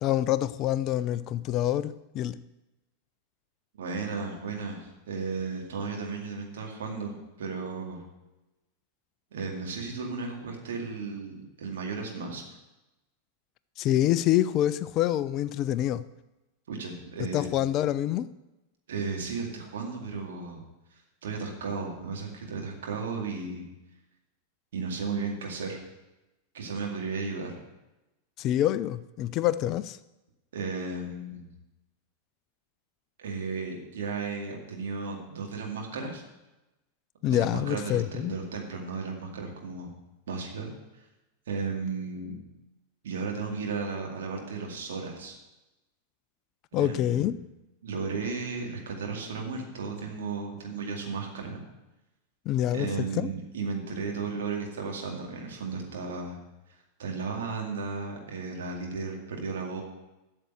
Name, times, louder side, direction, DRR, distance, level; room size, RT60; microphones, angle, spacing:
voice 1, 0.0-2.4 13.8-16.0 17.3-18.3 28.4-30.0 37.2-38.3 46.7-47.4 52.5-52.9 53.2-53.3, left 12 dB, 35° left, 0.4 m, -26 dB
voice 2, 3.8-8.0 9.3-12.4 16.7-17.5 18.9-20.6 21.2-23.6 24.7-25.8 26.5-27.6 30.5-31.5 33.2-36.2 37.3-39.9 40.3-41.1 41.5-42.4 43.0-45.4 46.7-47.4 47.8-51.6 52.7-56.4 57.0-59.8, right 4 dB, 60° right, 2.2 m, -34 dB
8.8 x 6.8 x 7.7 m
figure-of-eight pair, 90°, 0 cm